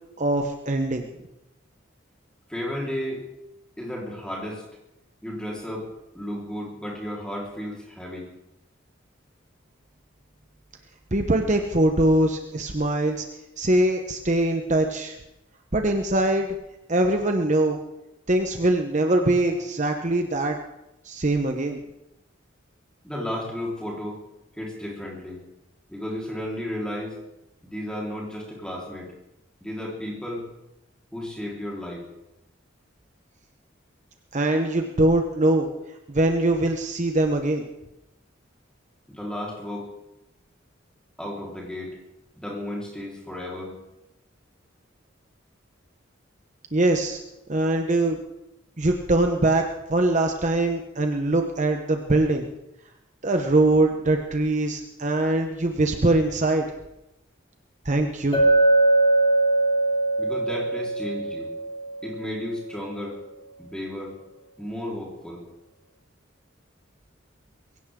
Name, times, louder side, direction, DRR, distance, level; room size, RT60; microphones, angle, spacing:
voice 1, 0.2-1.1 11.1-13.2 13.6-15.2 15.7-16.5 16.9-17.8 18.3-20.6 21.0-21.8 34.3-35.7 36.1-37.7 46.7-47.2 47.5-48.2 48.8-49.6 49.9-52.5 53.2-56.6 57.8-58.4, right 2 dB, 40° right, 4 dB, 1.0 m, -22 dB
voice 2, 2.5-3.2 3.8-4.6 5.2-5.9 6.1-8.3 23.0-24.2 24.6-25.4 25.9-27.2 27.6-29.1 29.6-30.5 31.1-32.1 39.1-39.9 41.2-42.0 42.4-43.8 60.2-61.5 62.0-63.2 63.6-64.2 64.6-65.4, left 1 dB, 5° left, -3 dB, 4.3 m, -33 dB
Chink clink, 58.3-62.3, right 2 dB, 25° left, 2.8 m, -21 dB
22.5 x 17.0 x 3.8 m, 0.91 s
head